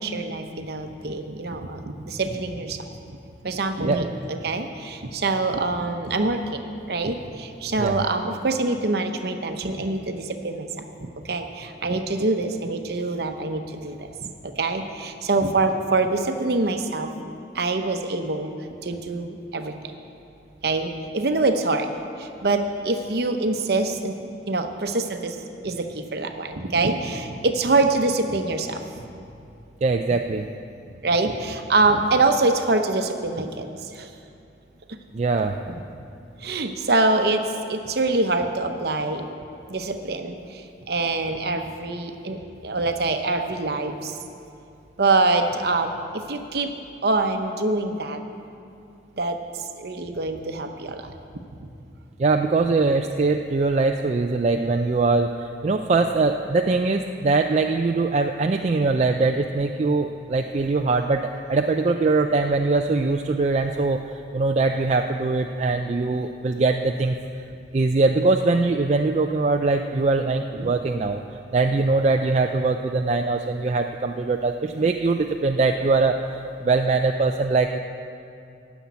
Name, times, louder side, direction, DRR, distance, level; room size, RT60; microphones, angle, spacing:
voice 1, 0.0-2.8 3.4-6.6 6.9-10.7 11.0-17.1 17.5-18.5 18.8-19.9 20.6-21.9 22.2-24.1 24.5-25.4 25.6-28.8 30.1-30.2 31.0-34.1 34.9-35.0 35.7-35.8 36.4-37.4 37.7-39.3 39.7-42.4 42.6-44.2 45.0-46.7 47.0-48.2 49.2-49.4 49.8-51.1 70.6-70.7, right 3 dB, 55° right, 6 dB, 0.8 m, -25 dB
voice 2, 29.8-30.5 35.1-35.6 52.2-64.0 64.3-67.2 67.7-71.2 71.5-77.8, right 3 dB, 35° right, 4 dB, 0.3 m, -22 dB
10.0 x 7.1 x 9.4 m, 2.6 s
head